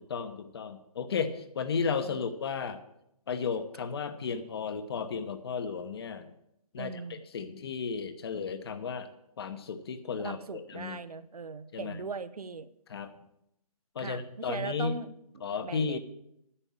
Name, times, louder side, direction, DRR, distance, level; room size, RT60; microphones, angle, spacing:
voice 1, 0.0-2.8 3.3-6.3 6.7-9.1 9.4-11.0 11.7-12.0 12.9-13.1 13.9-14.9 15.4-16.0, left 5 dB, 40° left, 10 dB, 1.0 m, -34 dB
voice 2, 6.8-7.2 10.2-12.7 14.0-15.1 15.6-16.0, right 4 dB, 75° right, 13 dB, 0.8 m, -39 dB
9.9 x 7.0 x 8.6 m, 0.80 s
figure-of-eight pair, 150°, 19 cm